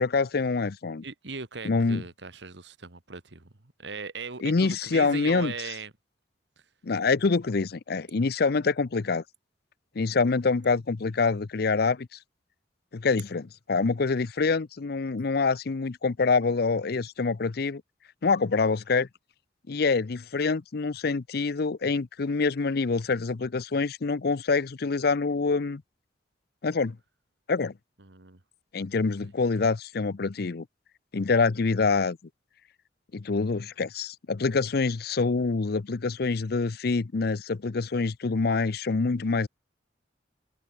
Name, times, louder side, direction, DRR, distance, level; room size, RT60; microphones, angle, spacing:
voice 1, 0.0-1.0 1.6-2.0 4.4-5.5 6.8-9.2 10.0-12.2 12.9-17.8 18.2-19.1 19.7-25.8 26.6-27.0 27.5-27.7 28.7-30.6 31.1-32.2 33.1-39.5, left 4 dB, 55° left, 0.6 m, -26 dB
voice 2, 1.0-3.5 3.8-5.9 28.0-28.4, right 4 dB, 70° right, 1.9 m, -38 dB
head